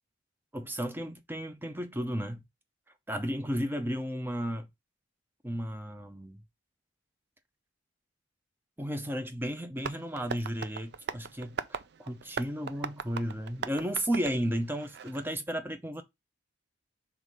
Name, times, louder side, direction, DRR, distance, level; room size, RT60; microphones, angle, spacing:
voice 1, 0.5-2.4 3.1-4.7 5.4-6.4 8.8-16.0, equal, 10° right, 0.6 m, -33 dB
Tap, 9.8-15.3, right 6 dB, 55° right, 0.4 m, -40 dB
4.9 x 3.7 x 5.3 m
head